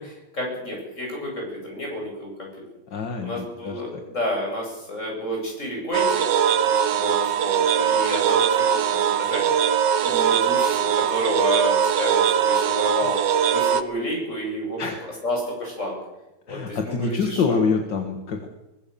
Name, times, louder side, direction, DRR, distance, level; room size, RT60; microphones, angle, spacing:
voice 1, 0.0-2.5 3.2-6.2 6.6-9.7 10.0-13.1 13.5-14.8 15.2-16.0 16.5-17.6, equal, 40° left, -1 dB, 8.4 m, -30 dB
voice 2, 2.9-4.0 13.0-13.1 14.8-15.2 16.5-18.5, left 5 dB, 80° left, 4 dB, 2.3 m, -26 dB
sound 1, 5.9-13.8, right 8 dB, 80° right, 1.6 m, -21 dB
sound 2, 9.9-14.9, right 2 dB, 20° left, 7.9 m, -43 dB
23.0 x 17.5 x 7.0 m, 0.96 s
omnidirectional pair, 1.9 m